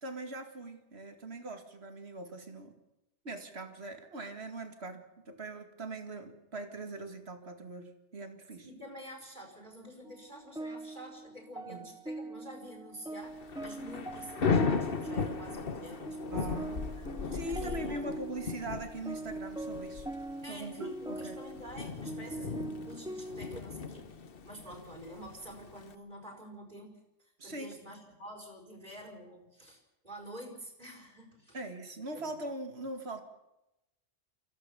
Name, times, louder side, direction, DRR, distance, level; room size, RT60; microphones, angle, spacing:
voice 1, 0.0-2.8 3.2-8.7 11.7-11.9 16.3-16.8 17.3-20.1 20.5-21.4 22.4-22.6 27.4-27.8 31.5-33.2, right 2 dB, 60° right, 6 dB, 2.4 m, -41 dB
voice 2, 8.6-18.0 20.4-27.0 27.4-31.6 32.1-32.3, equal, 40° right, 3 dB, 5.1 m, -48 dB
sound 1, 10.0-23.6, right 1 dB, 5° right, 0.4 m, -42 dB
Thunder / Rain, 13.3-25.9, left 5 dB, 50° left, 1.2 m, -36 dB
24.5 x 16.5 x 7.0 m, 0.93 s
omnidirectional pair, 1.3 m